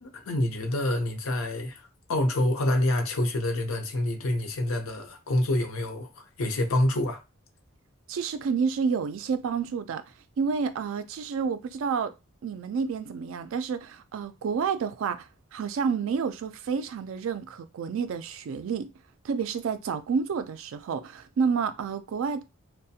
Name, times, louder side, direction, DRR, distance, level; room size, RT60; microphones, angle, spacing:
voice 1, 0.0-7.2, left 1 dB, 85° left, 0.6 m, -27 dB
voice 2, 8.1-10.0 10.4-12.1 12.4-18.9 19.2-22.4, right 6 dB, 70° right, 0.3 m, -29 dB
2.4 x 2.1 x 2.7 m
head